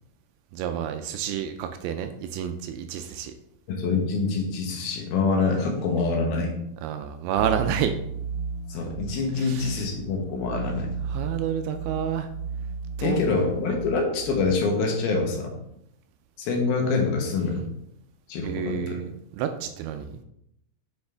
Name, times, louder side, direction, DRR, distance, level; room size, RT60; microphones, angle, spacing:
voice 1, 0.5-3.3 6.8-7.9 9.4-9.8 11.1-12.3 13.0-13.2 18.4-19.1 19.4-20.2, right 9 dB, 85° right, 7 dB, 2.4 m, -29 dB
voice 2, 3.7-6.5 8.7-10.9 13.0-15.5 16.4-17.6 18.3-19.0, left 4 dB, 70° left, 1 dB, 2.9 m, -25 dB
sound 1, 7.3-14.6, right 5 dB, 40° right, 1.8 m, -35 dB
8.1 x 5.6 x 3.4 m, 0.76 s
omnidirectional pair, 4.7 m